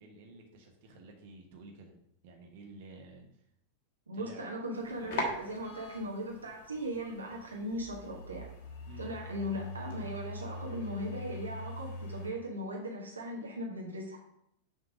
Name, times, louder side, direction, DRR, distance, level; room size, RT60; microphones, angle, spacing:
voice 1, 0.0-1.9 2.2-3.4 4.1-4.5 8.8-9.1, right 2 dB, 50° right, 2 dB, 1.1 m, -51 dB
voice 2, 4.1-8.5 9.0-14.2, equal, 75° right, -1 dB, 1.0 m, -38 dB
sound 1, 4.7-12.3, left 1 dB, 50° left, 1.3 m, -42 dB
6.4 x 3.4 x 5.0 m, 0.75 s
figure-of-eight pair, 90°, 0 cm